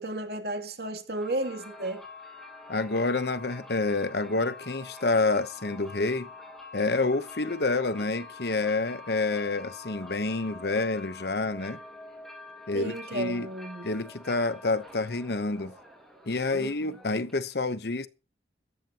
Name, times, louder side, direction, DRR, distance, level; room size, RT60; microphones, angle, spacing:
voice 1, 0.0-2.0 12.7-13.9 16.5-16.9, right 1 dB, 60° right, 2.8 m, -33 dB
sound 1, 1.1-17.5, left 3 dB, ahead, 6.7 m, -46 dB
voice 2, 2.7-6.3 6.7-11.8 12.7-13.5 13.8-15.7 16.3-18.1, left 3 dB, 60° left, 1.0 m, -28 dB
16.5 x 14.0 x 3.0 m
head